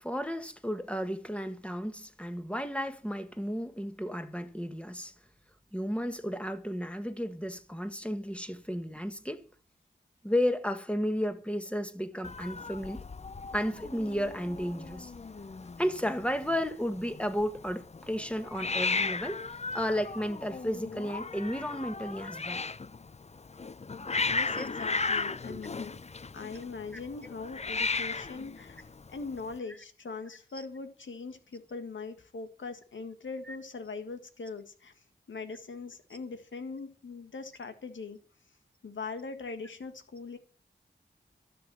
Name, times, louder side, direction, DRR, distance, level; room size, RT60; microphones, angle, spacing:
voice 1, 0.0-5.1 5.7-9.4 10.2-13.0 13.5-15.1 15.8-19.4 19.7-22.6 24.5-24.7 25.5-25.6 33.5-33.6, equal, 5° left, 1.8 m, -33 dB
Hiss, 12.2-29.6, left 4 dB, 35° left, 0.6 m, -36 dB
voice 2, 24.3-26.0 26.3-34.9 35.3-38.2 38.8-40.4, left 4 dB, 90° left, 1.7 m, -41 dB
12.5 x 6.9 x 7.5 m
cardioid pair, 45°, 19 cm